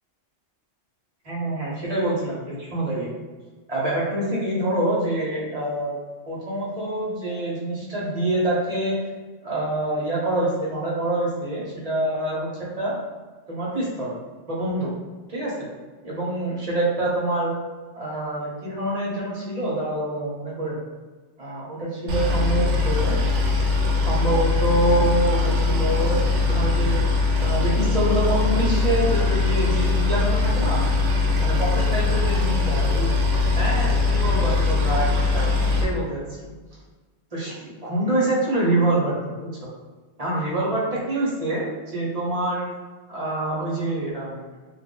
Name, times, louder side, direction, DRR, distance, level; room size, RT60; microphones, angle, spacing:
voice 1, 1.2-3.1 3.7-6.0 6.3-9.0 9.4-12.9 13.5-14.2 14.5-14.9 15.3-15.7 16.0-17.6 18.0-20.8 21.4-23.2 24.0-27.0 27.4-30.8 31.4-33.1 33.6-36.5 37.3-39.7 40.2-42.7 43.1-44.6, right 1 dB, 35° right, -5 dB, 0.7 m, -26 dB
Boat Water vehicle, 22.1-35.8, left 3 dB, 75° right, 0.9 m, -21 dB
2.5 x 2.4 x 3.6 m, 1.3 s
omnidirectional pair, 1.3 m